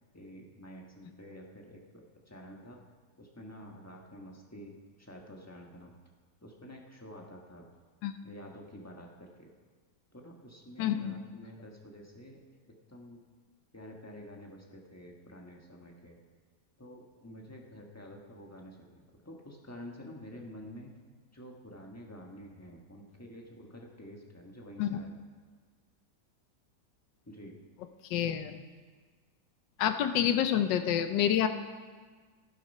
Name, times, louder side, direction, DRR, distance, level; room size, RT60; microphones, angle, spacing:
voice 1, 0.1-2.8 3.2-5.9 6.4-7.7 8.2-9.5 10.1-13.2 13.7-16.2 16.8-20.9 21.3-25.2 27.3-27.6, equal, 10° left, 0 dB, 1.2 m, -49 dB
voice 2, 10.8-11.1 24.8-25.0 28.1-28.6 29.8-31.5, left 10 dB, 85° left, 9 dB, 1.4 m, -28 dB
11.5 x 11.5 x 5.4 m, 1.5 s
omnidirectional pair, 1.9 m